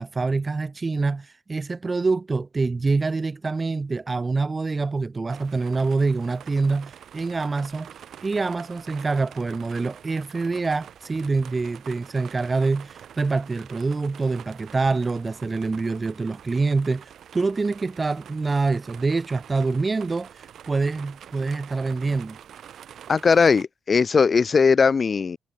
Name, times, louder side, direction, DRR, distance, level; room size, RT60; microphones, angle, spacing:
voice 1, 0.0-7.9 8.2-20.3 20.7-22.4, right 3 dB, 25° right, 1.5 m, -25 dB
sound 1, 5.3-23.6, right 9 dB, 65° right, 6.8 m, -46 dB
voice 2, 23.1-25.4, left 5 dB, 40° left, 0.8 m, -19 dB
cardioid pair, 90°, 0 cm